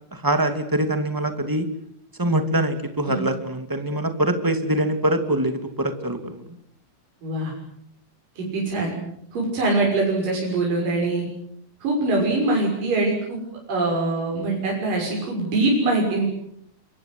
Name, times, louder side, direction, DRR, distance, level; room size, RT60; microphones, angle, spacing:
voice 1, 0.1-1.7 2.2-6.5, right 1 dB, 5° right, 7 dB, 1.7 m, -24 dB
voice 2, 7.2-7.5 8.4-8.9 9.3-11.2 11.8-13.4 13.7-16.2, right 2 dB, 65° right, -2 dB, 8.1 m, -23 dB
28.5 x 24.5 x 7.9 m, 0.72 s
omnidirectional pair, 4.2 m